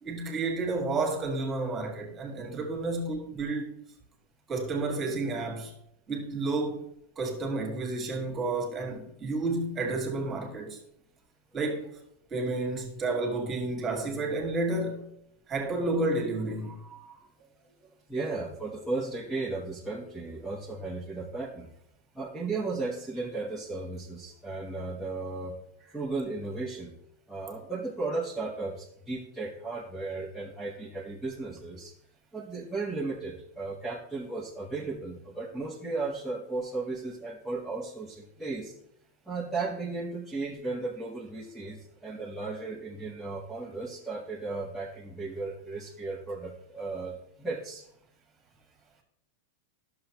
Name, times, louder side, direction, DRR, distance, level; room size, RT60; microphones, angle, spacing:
voice 1, 0.0-3.7 4.5-5.7 6.1-6.8 7.2-10.8 11.5-11.9 12.3-15.1 15.5-17.2, right 2 dB, 20° right, 2.1 m, -31 dB
voice 2, 18.1-21.7 22.1-25.5 25.8-26.9 27.3-31.9 32.3-38.7 39.3-47.8, right 3 dB, ahead, 1.1 m, -35 dB
11.0 x 6.8 x 3.0 m
supercardioid pair, 140°, 0 cm